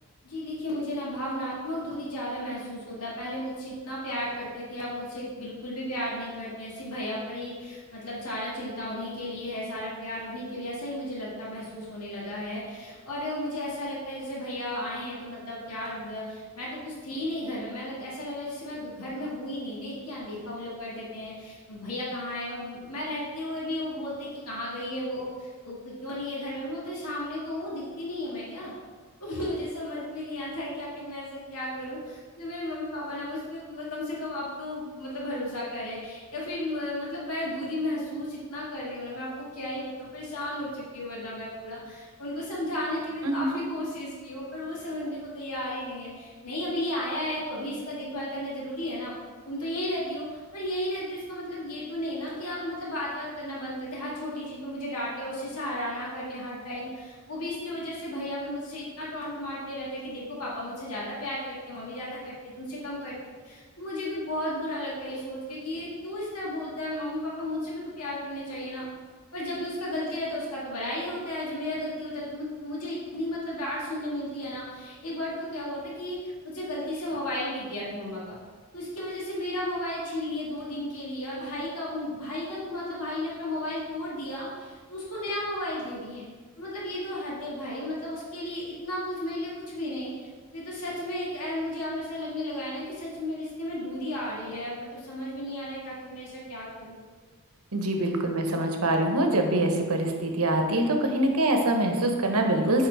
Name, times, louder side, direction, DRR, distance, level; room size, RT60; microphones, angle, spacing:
voice 1, 0.2-28.7 29.2-49.1 49.5-63.2 63.4-68.9 69.3-78.4 78.7-86.3 86.6-97.0, left 1 dB, 90° left, -6 dB, 1.9 m, -34 dB
voice 2, 43.2-43.6 97.7-102.9, right 1 dB, 75° right, 4 dB, 0.9 m, -24 dB
6.6 x 4.3 x 4.6 m, 1.5 s
head